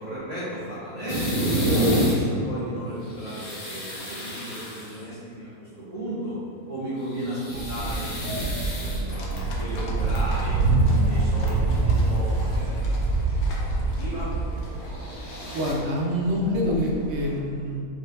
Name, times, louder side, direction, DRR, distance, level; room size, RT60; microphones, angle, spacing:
voice 1, 0.0-6.3 6.7-7.4 7.7-8.1 8.7-10.6 10.9-13.2 14.0-14.3, right 1 dB, 25° right, -14 dB, 1.6 m, -34 dB
sound 1, 1.1-2.2 3.0-5.0 7.0-9.4 10.0-10.2 11.1-11.2 11.5-11.6 14.8-15.7, equal, 35° left, 1.1 m, -29 dB
sound 2, 7.5-17.4, right 3 dB, 75° right, 1.1 m, -25 dB
sound 3, 9.1-16.0, left 1 dB, 85° left, 1.4 m, -41 dB
voice 2, 15.5-17.9, equal, 55° right, -1 dB, 1.1 m, -26 dB
5.0 x 4.4 x 4.7 m, 2.3 s
omnidirectional pair, 1.5 m